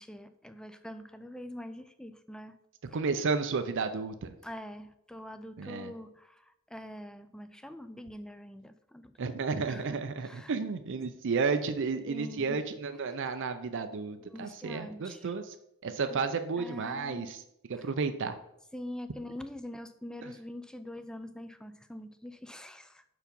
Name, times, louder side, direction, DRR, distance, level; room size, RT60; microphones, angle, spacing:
voice 1, 0.0-2.6 2.9-3.0 4.4-9.4 9.7-10.5 12.1-12.6 14.3-15.3 16.0-16.2 16.6-17.3 17.7-17.9 18.7-23.0, left 1 dB, 5° left, 11 dB, 0.3 m, -44 dB
voice 2, 2.9-4.3 5.6-5.9 9.2-15.5 15.8-17.4 17.8-18.4, right 4 dB, 60° right, 9 dB, 0.5 m, -32 dB
6.0 x 4.7 x 5.2 m, 0.79 s
head